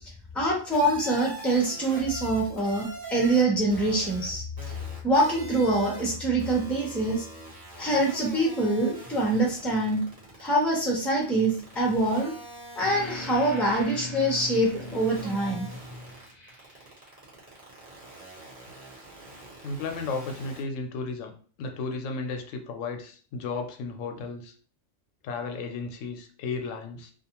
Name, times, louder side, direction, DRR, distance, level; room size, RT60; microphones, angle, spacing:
voice 1, 0.3-4.4 5.0-7.2 7.8-10.0 10.4-12.3 12.8-15.7, right 1 dB, ahead, -3 dB, 0.6 m, -25 dB
sound 1, 0.7-3.4 3.7-4.3 4.6-6.1 6.4-10.7 11.2-20.6, right 2 dB, 40° right, 1.2 m, -44 dB
sound 2, 12.8-17.0, left 1 dB, 45° left, 0.6 m, -39 dB
voice 2, 19.6-21.3 21.6-24.5 25.2-27.1, left 4 dB, 90° left, 5 dB, 0.9 m, -34 dB
2.4 x 2.4 x 2.8 m, 0.41 s
omnidirectional pair, 1.3 m